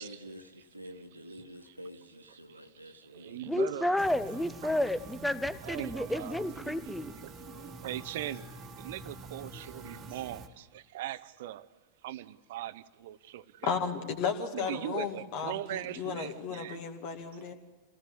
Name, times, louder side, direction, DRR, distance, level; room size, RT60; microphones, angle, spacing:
voice 1, 0.0-4.1, equal, 90° right, 7 dB, 1.7 m, -49 dB
voice 2, 1.4-1.7 2.5-3.9 4.6-4.7 5.6-6.4 7.2-8.5 8.8-11.6 12.0-13.8 14.5-16.8, right 13 dB, 55° right, 15 dB, 0.8 m, -40 dB
voice 3, 3.5-7.1, left 1 dB, 5° left, 14 dB, 0.9 m, -31 dB
sound 1, 4.0-10.5, right 4 dB, 30° right, 1.6 m, -45 dB
voice 4, 13.6-17.5, left 6 dB, 45° left, 5 dB, 2.3 m, -34 dB
26.0 x 18.0 x 8.5 m, 1.3 s
figure-of-eight pair, 90°, 0 cm